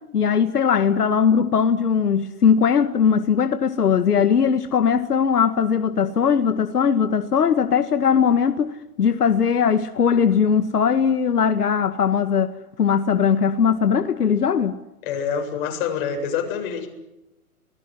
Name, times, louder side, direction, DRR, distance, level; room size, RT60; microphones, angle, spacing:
voice 1, 0.1-14.8, left 7 dB, 80° left, 1.9 m, -19 dB
voice 2, 15.0-16.9, left 7 dB, 35° left, 7.6 m, -26 dB
29.0 x 20.0 x 9.9 m
hypercardioid pair, 145°, 45 cm